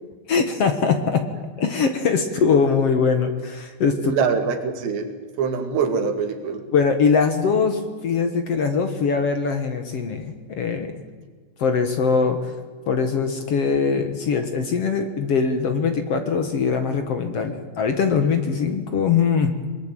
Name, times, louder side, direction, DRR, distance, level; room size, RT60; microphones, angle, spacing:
voice 1, 0.3-1.2 1.6-4.1 6.7-10.9 11.6-12.5 12.9-19.5, left 5 dB, 60° left, 7 dB, 1.6 m, -22 dB
voice 2, 4.0-5.1 5.4-6.7, right 6 dB, 80° right, 6 dB, 4.5 m, -24 dB
23.5 x 21.0 x 9.2 m, 1.5 s
omnidirectional pair, 4.9 m